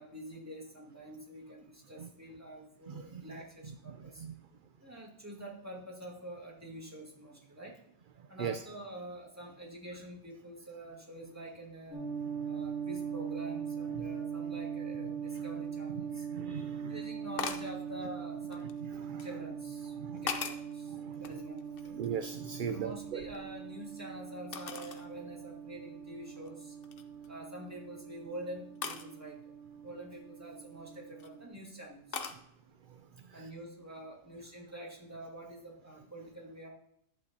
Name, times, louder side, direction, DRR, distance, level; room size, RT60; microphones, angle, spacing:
voice 1, 0.0-4.2 4.8-7.8 8.3-12.0 12.4-16.3 16.8-18.7 19.2-19.9 20.2-22.0 22.7-26.8 27.3-29.5 29.8-32.2 33.3-36.7, right 1 dB, 15° right, -2 dB, 2.0 m, -47 dB
voice 2, 2.9-3.2 4.2-4.3 8.4-8.6 16.3-16.9 19.0-19.3 20.0-20.3 20.9-21.1 22.0-23.2, right 7 dB, 60° right, 10 dB, 0.6 m, -38 dB
sound 1, 11.9-31.5, right 7 dB, 85° left, 2.4 m, -41 dB
sound 2, 15.9-16.0 17.4-17.7 18.5-19.3 19.9-20.7 21.2-22.3 22.6-23.9 24.5-25.1 25.6-25.7 26.3-26.5 26.8-27.3 28.8-29.1 30.8-31.3 32.1-32.4, left 6 dB, 60° left, 0.9 m, -40 dB
11.5 x 8.5 x 2.8 m, 0.73 s
omnidirectional pair, 1.1 m